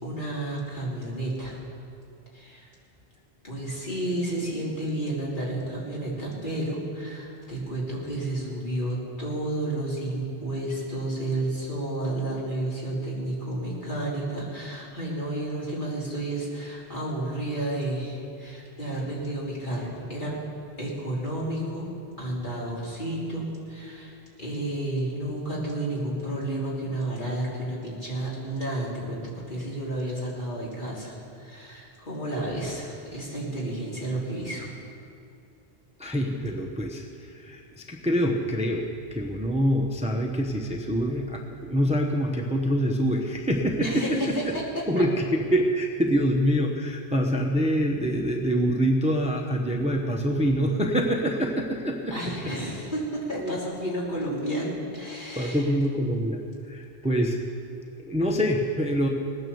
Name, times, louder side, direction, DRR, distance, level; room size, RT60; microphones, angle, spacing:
voice 1, 0.0-1.6 2.3-2.7 3.4-20.3 20.8-21.9 22.2-29.2 29.5-34.7 43.8-45.0 52.1-55.7, right 1 dB, 45° left, -6 dB, 3.5 m, -31 dB
voice 2, 36.0-38.8 39.1-44.4 44.9-52.1 53.3-53.6 55.3-57.4 58.0-59.1, equal, 5° right, 1 dB, 0.9 m, -25 dB
18.5 x 9.7 x 7.1 m, 2.5 s
omnidirectional pair, 1.1 m